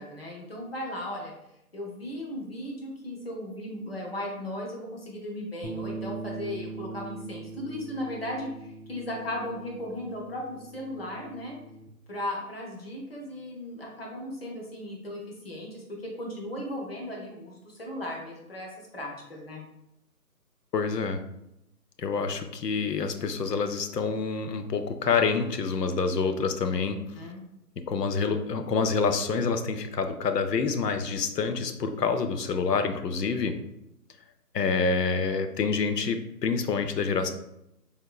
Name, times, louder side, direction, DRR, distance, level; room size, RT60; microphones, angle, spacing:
voice 1, 0.0-1.3 1.7-11.6 12.1-15.8 16.2-19.6 27.2-27.4, left 1 dB, 40° left, -1 dB, 0.7 m, -36 dB
sound 1, 5.6-11.9, right 3 dB, ahead, 0.4 m, -41 dB
voice 2, 20.7-21.2 22.0-27.2 27.8-33.6 34.5-37.3, left 5 dB, 80° left, 8 dB, 0.6 m, -27 dB
3.6 x 3.6 x 2.3 m, 0.83 s
figure-of-eight pair, 170°, 48 cm